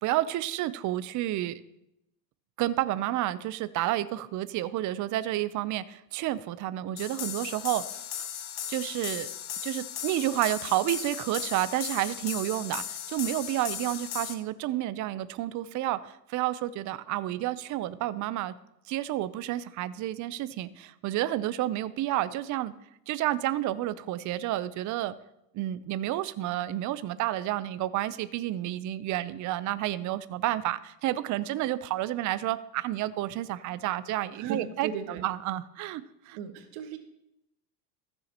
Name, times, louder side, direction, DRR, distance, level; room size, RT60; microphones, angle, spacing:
voice 1, 0.0-1.6 2.6-7.8 8.7-9.3 9.6-18.5 18.9-22.7 23.1-25.1 25.5-34.9 35.2-36.4, right 14 dB, 40° right, 15 dB, 0.5 m, -30 dB
sound 1, 7.0-14.3, left 10 dB, 40° left, 1.0 m, -37 dB
voice 2, 34.3-35.2 36.3-37.0, right 7 dB, 70° right, 7 dB, 1.4 m, -36 dB
14.5 x 7.0 x 2.9 m, 0.80 s
supercardioid pair, 105°, 49 cm